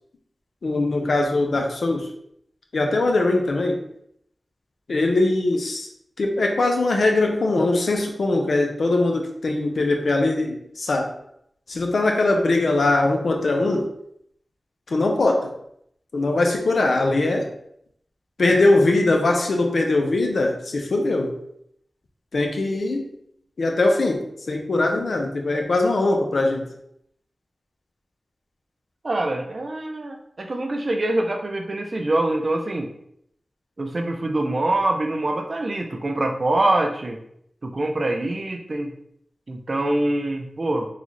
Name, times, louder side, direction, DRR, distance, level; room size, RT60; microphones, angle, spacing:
voice 1, 0.6-2.1 2.7-3.8 4.9-5.9 6.2-11.1 11.7-13.9 14.9-15.5 16.1-17.5 18.4-21.4 22.3-23.1 23.6-26.7, left 2 dB, 80° left, 2 dB, 0.6 m, -21 dB
voice 2, 29.0-32.9 33.8-37.2 37.6-38.9 39.5-40.9, right 2 dB, 60° right, 3 dB, 0.6 m, -24 dB
3.8 x 2.4 x 3.1 m, 0.72 s
cardioid pair, 40°, 0 cm